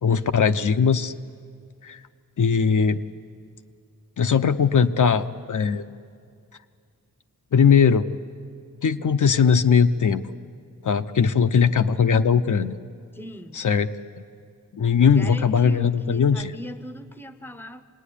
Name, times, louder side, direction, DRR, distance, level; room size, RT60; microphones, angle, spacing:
voice 1, 0.0-1.1 1.8-2.0 2.4-3.0 4.2-5.9 7.5-8.1 8.8-10.2 10.8-12.7 13.5-13.9 14.7-16.5, left 6 dB, 60° left, 8 dB, 0.7 m, -19 dB
voice 2, 13.1-13.6 15.0-17.8, equal, 5° left, 11 dB, 0.8 m, -39 dB
26.5 x 19.5 x 9.9 m, 2.2 s
wide cardioid pair, 170°, 35 cm